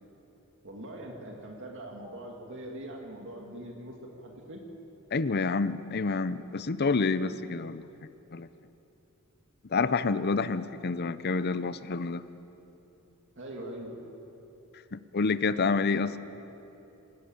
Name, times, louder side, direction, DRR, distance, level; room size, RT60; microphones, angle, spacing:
voice 1, 0.6-4.6 13.4-14.1 15.6-15.8, right 1 dB, 60° right, 1 dB, 2.3 m, -42 dB
voice 2, 5.1-7.8 8.3-8.5 9.7-12.2 14.9-16.2, left 4 dB, 50° left, 14 dB, 0.6 m, -28 dB
26.0 x 13.5 x 8.9 m, 3.0 s
head